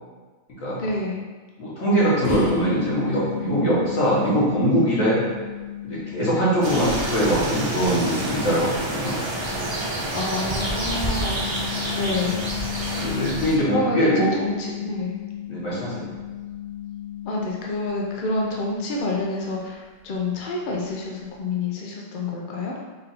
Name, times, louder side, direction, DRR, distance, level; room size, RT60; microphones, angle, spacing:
voice 1, 0.8-1.2 10.1-11.7 11.9-12.4 13.7-14.1 14.4-15.1 17.2-22.7, left 2 dB, 50° left, -2 dB, 0.6 m, -28 dB
voice 2, 1.6-5.2 5.8-9.2 13.0-14.3 15.5-16.1, right 1 dB, 70° left, -8 dB, 1.8 m, -22 dB
spring pluck, 2.2-19.7, left 10 dB, 15° right, 1.1 m, -35 dB
sound 1, 6.6-13.6, right 1 dB, 40° right, 0.4 m, -28 dB
4.1 x 2.6 x 4.0 m, 1.3 s
omnidirectional pair, 1.4 m